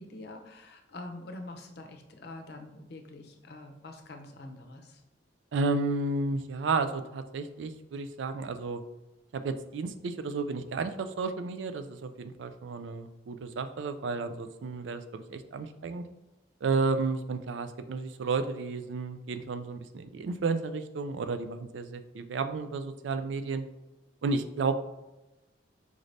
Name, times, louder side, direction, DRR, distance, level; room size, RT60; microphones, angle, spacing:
voice 1, 0.0-5.0, left 2 dB, 60° left, 5 dB, 0.6 m, -45 dB
voice 2, 5.5-8.8 9.3-16.0 16.6-23.6 24.2-24.8, right 4 dB, 75° right, 10 dB, 0.4 m, -32 dB
5.1 x 2.6 x 3.2 m, 1.0 s
head